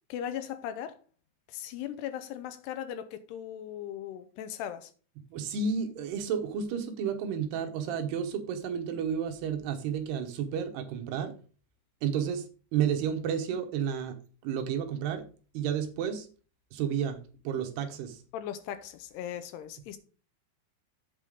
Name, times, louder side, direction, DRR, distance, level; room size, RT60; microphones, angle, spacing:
voice 1, 0.1-1.0 1.5-4.9 18.3-20.0, left 10 dB, 80° left, 2.6 m, -38 dB
voice 2, 5.3-11.3 12.0-12.4 12.7-14.2 14.4-15.2 15.5-16.3 16.7-17.2 17.4-18.2, right 7 dB, 75° right, 3.0 m, -31 dB
8.3 x 5.5 x 5.0 m
omnidirectional pair, 5.1 m